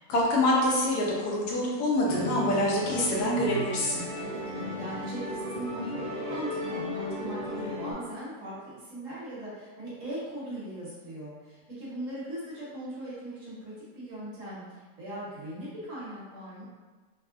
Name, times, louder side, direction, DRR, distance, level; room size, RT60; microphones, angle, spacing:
voice 1, 0.1-4.0, left 1 dB, 75° left, -4 dB, 1.1 m, -26 dB
Musical instrument, 2.1-7.9, left 1 dB, 30° left, 0.8 m, -35 dB
voice 2, 4.2-16.6, right 1 dB, 55° right, -8 dB, 1.2 m, -39 dB
3.5 x 2.0 x 2.4 m, 1.3 s
omnidirectional pair, 1.7 m